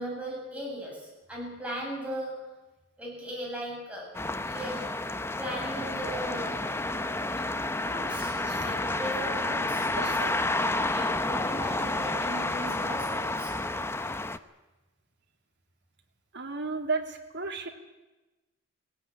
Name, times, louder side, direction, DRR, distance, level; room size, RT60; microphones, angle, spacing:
voice 1, 0.0-2.5 3.0-4.2 4.4-4.9 5.4-6.7 7.8-8.3 8.6-10.1 10.9-13.5, equal, 5° right, -3 dB, 7.5 m, -38 dB
sound 1, 4.1-14.4, left 2 dB, 10° left, 0.7 m, -30 dB
voice 2, 8.2-8.7 10.0-10.3 16.3-17.7, right 3 dB, 55° right, 2 dB, 2.8 m, -34 dB
18.0 x 18.0 x 9.8 m, 1.1 s
head